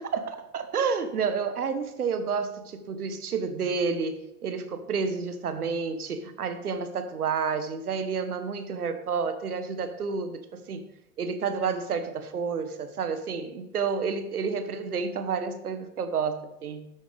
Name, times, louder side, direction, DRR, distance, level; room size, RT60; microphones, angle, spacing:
voice 1, 0.0-10.9 11.2-16.8, right 5 dB, 75° right, 10 dB, 1.3 m, -30 dB
12.5 x 8.8 x 3.5 m, 0.91 s
figure-of-eight pair, 100°, 45 cm